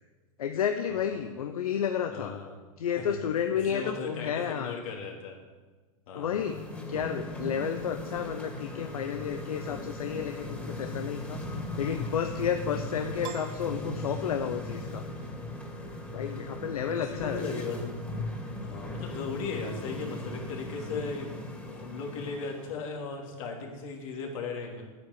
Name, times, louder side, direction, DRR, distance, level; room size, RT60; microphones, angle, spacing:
voice 1, 0.4-2.3 2.8-4.7 6.1-6.6 6.9-11.4 11.8-15.1 16.1-17.4, left 8 dB, 85° left, 7 dB, 0.8 m, -31 dB
voice 2, 2.1-2.6 3.0-3.2 3.7-5.4 6.1-6.6 11.4-11.8 16.9-18.0 18.6-24.8, left 4 dB, 65° left, 0 dB, 3.3 m, -37 dB
sound 1, 6.2-22.9, left 1 dB, 10° left, 2.6 m, -38 dB
Piano, 13.2-14.8, right 12 dB, 55° right, 1.0 m, -44 dB
9.8 x 9.8 x 7.6 m, 1.3 s
hypercardioid pair, 115°, 18 cm